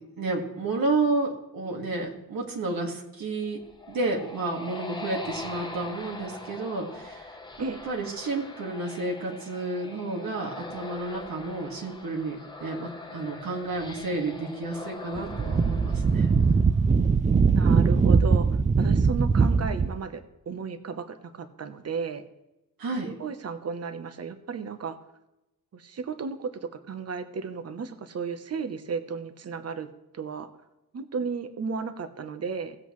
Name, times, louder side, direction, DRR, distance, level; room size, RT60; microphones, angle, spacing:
voice 1, 0.2-3.6 3.9-7.3 7.8-16.3 22.8-23.1, right 3 dB, 75° right, 1 dB, 1.9 m, -31 dB
sound 1, 3.4-17.0, left 3 dB, 10° left, 0.9 m, -42 dB
Wind, 15.1-20.0, right 5 dB, 20° right, 0.3 m, -21 dB
voice 2, 17.5-20.2 20.5-22.2 23.0-25.0 25.7-30.5 30.9-32.8, right 5 dB, 45° right, 9 dB, 0.9 m, -34 dB
17.5 x 7.8 x 3.1 m, 0.94 s
wide cardioid pair, 165°, 35 cm